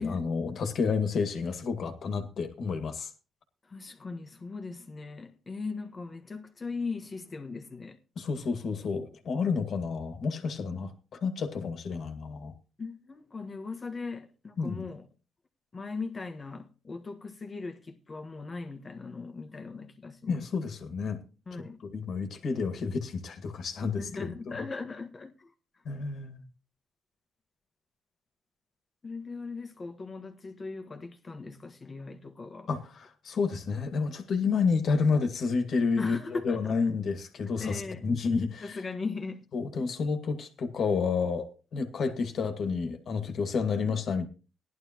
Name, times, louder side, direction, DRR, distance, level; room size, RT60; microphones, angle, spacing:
voice 1, 0.0-3.1 8.2-12.5 14.6-14.9 20.3-21.2 21.5-24.7 25.9-26.4 32.7-38.8 39.5-44.3, left 5 dB, 60° left, 2.0 m, -30 dB
voice 2, 3.7-8.0 12.8-15.0 15.7-20.4 21.5-21.8 24.0-25.5 29.0-32.7 36.0-36.8 37.6-38.1 38.4-39.4 39.8-39.9, left 4 dB, 30° left, 1.5 m, -38 dB
16.5 x 11.0 x 3.0 m
cardioid pair, 90°, 0 cm